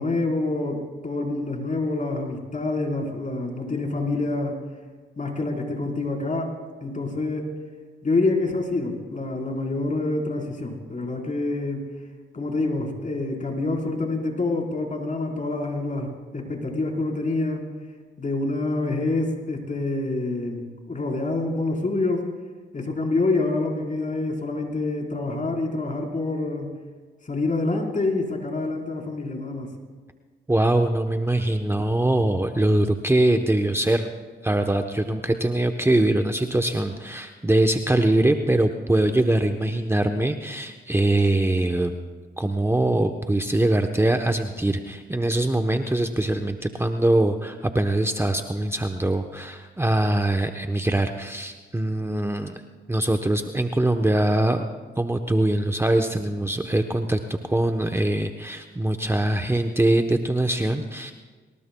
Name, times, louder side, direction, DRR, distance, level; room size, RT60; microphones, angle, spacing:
voice 1, 0.0-4.5 5.2-6.5 6.8-7.5 8.0-11.9 12.3-17.6 18.2-22.2 22.7-26.7 27.2-29.7, left 2 dB, 40° left, 0 dB, 4.3 m, -27 dB
voice 2, 30.5-34.1 34.4-41.9 42.4-52.6 52.9-54.6 55.0-57.2 57.5-61.1, right 1 dB, 10° right, 5 dB, 1.0 m, -22 dB
24.5 x 20.0 x 2.3 m, 1.5 s
supercardioid pair, 55°, 21 cm